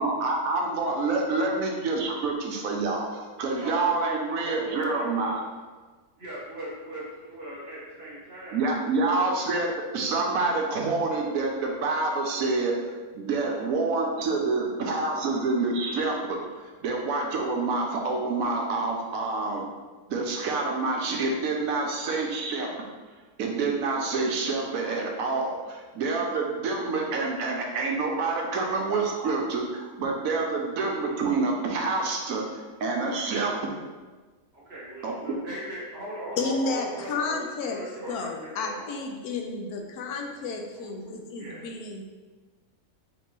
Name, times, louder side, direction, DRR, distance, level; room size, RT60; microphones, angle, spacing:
voice 1, 0.0-5.4 8.5-12.7 13.1-19.6 20.1-22.7 23.4-33.5 35.0-35.1, right 3 dB, 70° right, 1 dB, 1.0 m, -27 dB
voice 2, 3.5-5.5 6.2-9.2 34.5-39.0 40.8-40.9 41.4-41.6, right 1 dB, 50° right, -7 dB, 1.1 m, -40 dB
voice 3, 36.4-37.8 38.1-42.0, left 3 dB, 90° left, 1 dB, 1.1 m, -32 dB
4.3 x 2.9 x 3.2 m, 1.3 s
omnidirectional pair, 1.6 m